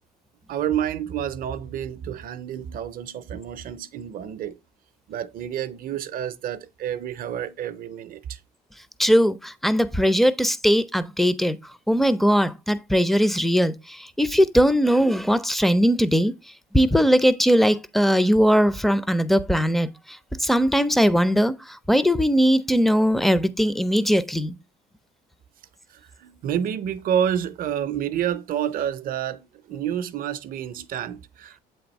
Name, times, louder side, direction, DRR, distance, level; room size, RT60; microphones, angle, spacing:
voice 1, 0.5-4.6 5.1-8.4 26.2-31.6, right 9 dB, 60° right, 0.5 m, -29 dB
voice 2, 9.0-11.6 11.9-16.3 16.7-19.9 20.4-21.5 21.9-24.5, equal, ahead, 0.4 m, -20 dB
7.6 x 3.5 x 4.0 m
cardioid pair, 110°, 17 cm